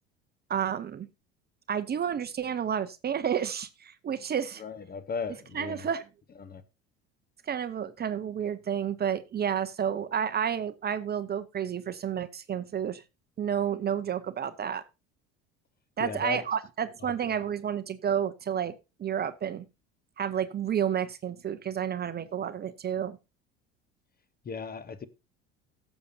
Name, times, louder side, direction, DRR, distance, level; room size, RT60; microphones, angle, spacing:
voice 1, 0.5-1.1 1.7-4.6 5.5-6.0 7.5-13.0 13.4-14.8 16.0-18.7 19.0-19.6 20.2-23.2, right 8 dB, 30° right, 0.7 m, -30 dB
voice 2, 4.6-5.9 6.4-6.6 16.0-16.4 17.0-17.3 24.4-25.1, left 5 dB, 30° left, 1.0 m, -37 dB
17.5 x 7.1 x 2.7 m
hypercardioid pair, 75°, 31 cm